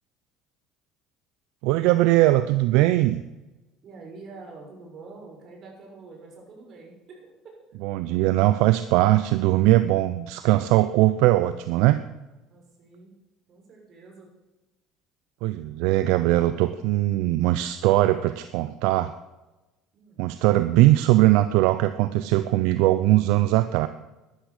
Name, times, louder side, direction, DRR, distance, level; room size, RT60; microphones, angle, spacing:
voice 1, 1.6-3.2 7.8-12.0 15.4-19.1 20.2-23.9, right 16 dB, 75° right, 12 dB, 0.6 m, -20 dB
voice 2, 3.8-7.8 12.5-13.1 13.5-14.3 19.9-20.3, right 3 dB, 50° right, 0 dB, 6.4 m, -46 dB
13.0 x 12.0 x 6.7 m, 1.1 s
supercardioid pair, 90°, 0 cm